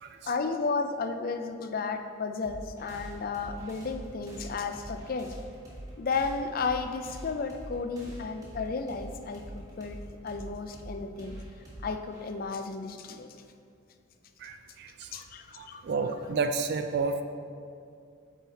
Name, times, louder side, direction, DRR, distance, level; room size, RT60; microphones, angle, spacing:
voice 1, 0.2-5.3 6.0-11.4 11.8-13.3 15.1-15.8, left 4 dB, 45° left, 7 dB, 0.4 m, -33 dB
sound 1, 2.4-13.5, right 1 dB, 15° right, 1.2 m, -45 dB
voice 2, 14.4-15.2 15.6-17.2, right 4 dB, 50° right, 7 dB, 0.3 m, -31 dB
8.4 x 4.0 x 4.0 m, 2.4 s
head